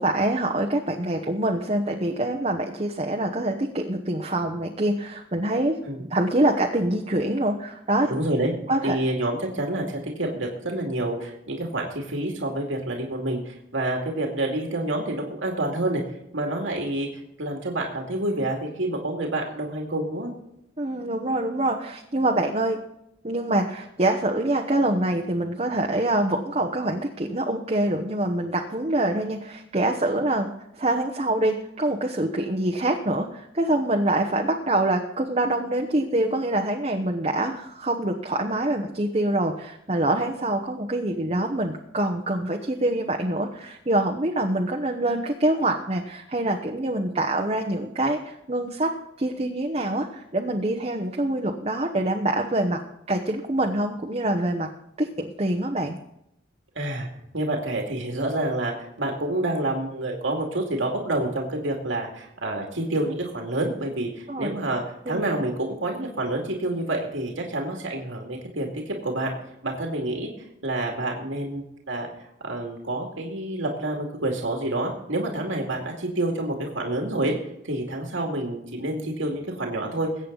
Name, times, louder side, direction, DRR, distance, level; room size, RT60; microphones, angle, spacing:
voice 1, 0.0-5.8 6.1-8.1 8.7-9.0 20.8-22.8 23.2-48.9 49.2-52.8 53.1-54.7 55.0-56.0 64.3-64.5 65.1-65.2, right 1 dB, 35° right, 2 dB, 1.0 m, -25 dB
voice 2, 8.1-8.5 8.8-16.0 16.3-20.3 56.8-57.1 57.3-58.7 59.0-69.3 69.6-70.3 70.6-72.1 72.4-77.3 77.6-80.1, right 1 dB, 80° right, 1 dB, 2.4 m, -28 dB
21.5 x 8.7 x 4.0 m, 0.82 s
head